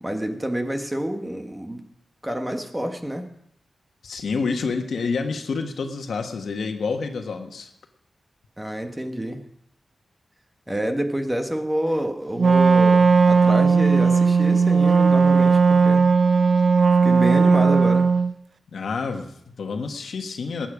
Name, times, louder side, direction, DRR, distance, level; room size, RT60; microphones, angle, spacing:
voice 1, 0.0-1.8 2.2-3.2 8.6-9.4 10.7-16.1 17.0-18.1, right 1 dB, 10° right, 5 dB, 1.4 m, -28 dB
voice 2, 4.0-7.7 18.7-20.7, left 4 dB, 80° left, 5 dB, 1.5 m, -28 dB
Wind instrument woodwind instrument, 12.4-18.3, right 5 dB, 55° right, 0.5 m, -17 dB
19.0 x 9.1 x 5.0 m, 0.74 s
wide cardioid pair, 105°, 0 cm